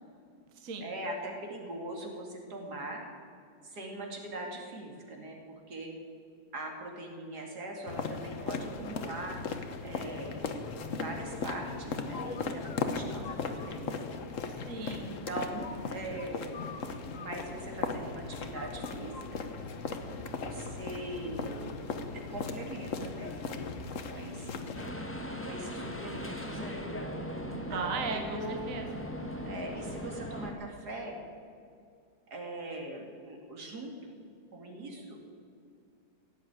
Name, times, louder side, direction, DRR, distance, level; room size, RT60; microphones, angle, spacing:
voice 1, 0.8-3.0 3.6-5.9 6.5-9.4 9.8-10.5 10.9-14.0 15.0-16.6 17.2-19.5 20.3-21.8 22.1-23.7 24.1-24.7 25.4-26.9 27.4-28.7 29.4-31.2 32.3-34.1 34.5-35.2, right 1 dB, 80° right, 1 dB, 3.0 m, -41 dB
sound 1, 7.9-24.9, left 4 dB, 55° left, 1.4 m, -37 dB
voice 2, 14.4-15.1 27.7-28.4 28.7-28.8, right 4 dB, 60° right, 5 dB, 1.4 m, -36 dB
sound 2, 24.7-30.5, equal, 10° left, 1.2 m, -39 dB
16.0 x 8.4 x 9.1 m, 2.4 s
omnidirectional pair, 1.7 m